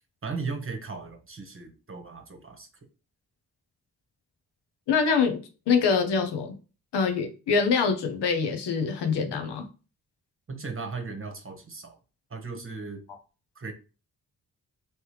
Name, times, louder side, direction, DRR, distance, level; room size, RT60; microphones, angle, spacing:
voice 1, 0.2-2.7 10.5-12.0 12.3-13.0 13.5-13.7, right 4 dB, 30° right, 1.2 m, -36 dB
voice 2, 4.9-5.4 5.7-6.5 6.9-9.6, left 5 dB, 75° left, 0.9 m, -24 dB
3.2 x 3.0 x 3.2 m
supercardioid pair, 45°, 41 cm